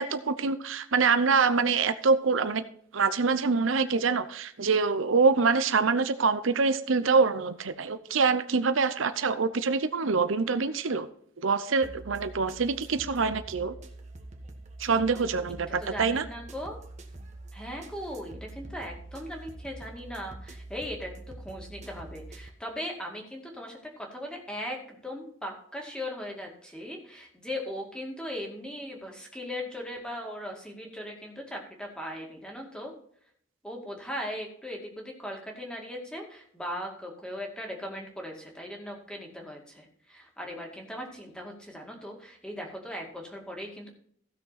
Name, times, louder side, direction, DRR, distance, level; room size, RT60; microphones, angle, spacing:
voice 1, 0.0-2.6 2.9-11.1 11.4-13.7 14.8-16.3, right 4 dB, 80° right, 12 dB, 0.7 m, -25 dB
sound 1, 11.8-22.5, right 2 dB, 35° right, 1.3 m, -45 dB
voice 2, 15.5-16.8 17.5-32.9 33.6-43.9, equal, 5° left, 0 dB, 2.2 m, -39 dB
15.5 x 6.4 x 4.1 m, 0.64 s
head